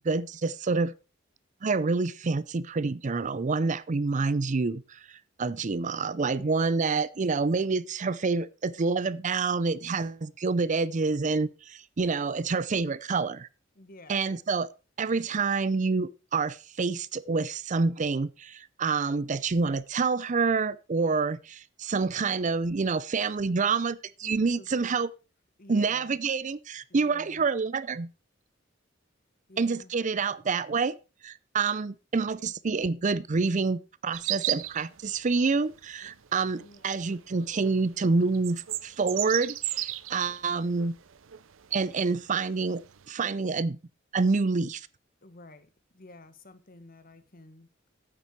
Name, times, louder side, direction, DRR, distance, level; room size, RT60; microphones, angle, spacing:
voice 1, 0.0-0.9 1.6-13.5 14.1-14.7 15.0-25.1 25.7-28.1 29.6-31.0 31.2-40.9 41.7-42.8 43.1-43.8 44.1-44.9, right 4 dB, 40° right, 0.5 m, -27 dB
voice 2, 6.2-6.7 13.7-14.3 24.6-24.7 25.6-26.2 26.9-27.5 29.5-29.9 36.6-37.0 45.2-45.7 45.9-47.9, left 2 dB, 45° left, 1.3 m, -50 dB
sound 1, 34.1-36.8 37.1-43.1, right 15 dB, 80° right, 0.6 m, -35 dB
10.0 x 8.6 x 4.6 m
head